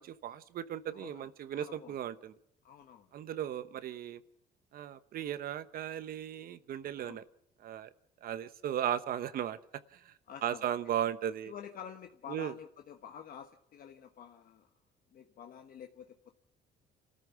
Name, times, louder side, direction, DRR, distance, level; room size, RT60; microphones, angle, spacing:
voice 1, 0.0-2.3 3.1-4.2 4.7-7.2 7.6-7.9 8.2-9.6 9.9-10.1 10.4-11.5 12.3-12.5, right 10 dB, 60° right, 13 dB, 1.0 m, -36 dB
voice 2, 0.9-1.3 1.5-1.9 2.6-3.1 7.0-7.2 10.3-10.6 11.4-14.7 15.1-16.3, left 8 dB, 55° left, 5 dB, 1.2 m, -49 dB
28.0 x 14.0 x 7.1 m, 0.73 s
cardioid pair, 110°, 17 cm